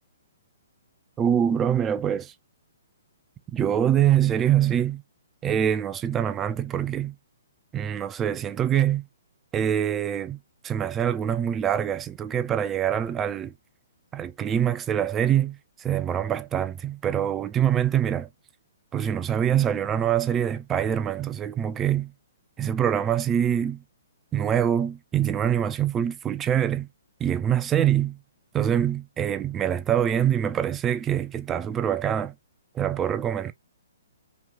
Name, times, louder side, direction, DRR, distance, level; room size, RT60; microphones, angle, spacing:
voice 1, 1.2-2.3 3.5-5.0 5.4-7.2 7.7-9.1 9.5-10.4 10.6-13.5 14.1-18.3 18.9-22.1 22.6-23.8 24.3-26.9 27.2-28.2 28.5-32.3 32.7-33.5, right 9 dB, 20° right, 0.4 m, -24 dB
3.0 x 2.7 x 3.4 m
figure-of-eight pair, 125°, 0 cm